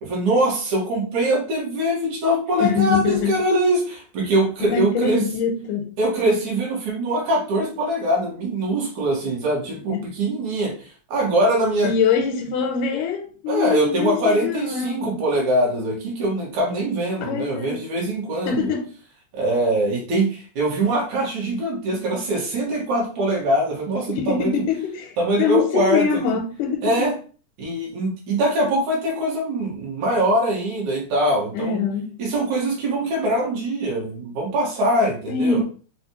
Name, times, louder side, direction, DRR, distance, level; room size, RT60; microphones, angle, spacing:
voice 1, 0.0-5.2 6.0-11.9 13.5-18.7 19.3-24.6 25.2-26.2 26.8-27.1 27.6-31.8 32.2-35.6, right 1 dB, 65° right, 2.8 m, -23 dB
voice 2, 2.6-3.3 4.6-5.9 9.9-10.1 11.8-15.2 17.2-17.8 18.5-18.9 24.1-27.1 31.5-32.1 35.3-35.6, left 6 dB, 85° left, 2.1 m, -23 dB
6.1 x 2.4 x 3.0 m
omnidirectional pair, 3.7 m